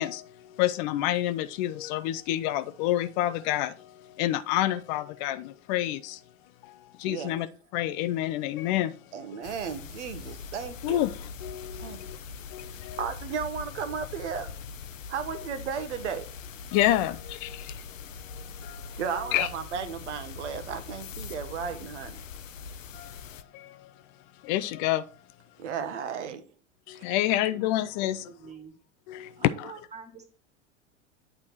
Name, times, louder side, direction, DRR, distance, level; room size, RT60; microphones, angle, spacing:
voice 1, 0.0-6.2 6.6-7.5 7.7-8.9 9.3-9.4 10.8-12.2 12.5-13.0 16.7-17.8 18.2-18.9 19.3-19.5 22.9-23.1 23.5-23.9 24.4-25.0 26.9-28.2 29.1-29.7, left 14 dB, 40° left, 0.5 m, -29 dB
voice 2, 7.0-7.4 9.1-11.0 11.8-12.0 13.0-14.6 15.1-16.4 19.0-22.2 25.6-26.4 27.1-27.2, right 7 dB, 65° right, 1.1 m, -34 dB
sound 1, 9.4-23.4, left 5 dB, 75° left, 0.6 m, -42 dB
voice 3, 28.2-28.7 29.4-30.3, right 6 dB, 15° right, 1.8 m, -46 dB
8.8 x 4.7 x 4.3 m
figure-of-eight pair, 85°, 39 cm